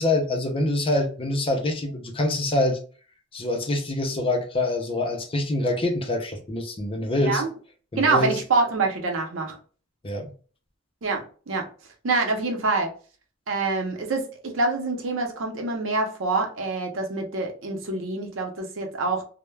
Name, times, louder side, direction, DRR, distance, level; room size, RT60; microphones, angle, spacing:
voice 1, 0.0-2.8 3.3-7.4 7.9-8.4 10.0-10.3, left 1 dB, 25° left, 3 dB, 0.5 m, -25 dB
voice 2, 8.0-9.6 11.0-11.7 12.0-12.9 13.5-19.2, right 3 dB, 75° right, 3 dB, 0.6 m, -26 dB
2.2 x 2.1 x 3.1 m, 0.39 s
head